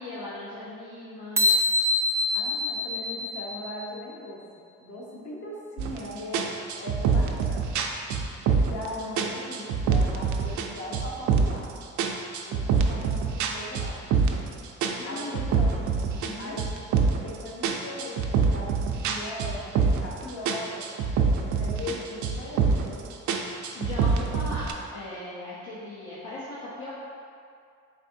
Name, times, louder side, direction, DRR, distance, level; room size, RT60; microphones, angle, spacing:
voice 1, 0.0-1.5 14.9-15.7 16.1-16.6 23.7-26.9, left 2 dB, 80° left, -10 dB, 0.9 m, -39 dB
sound 1, 1.4-4.0, left 2 dB, 10° right, 0.3 m, -25 dB
voice 2, 2.3-4.4 4.8-7.7 8.6-11.7 12.4-14.0 15.0-15.8 16.4-16.7 17.2-20.8 21.2-23.1, left 1 dB, 50° left, -4 dB, 1.0 m, -39 dB
sound 2, 5.8-6.0 6.3-8.9 9.2-10.7 10.9-11.6 12.0-14.5 14.8-17.3 17.6-20.2 20.4-22.0 22.2-22.9 23.3-24.7, right 5 dB, 70° right, 0.4 m, -25 dB
4.3 x 3.4 x 2.6 m, 2.4 s
cardioid pair, 90°, 30 cm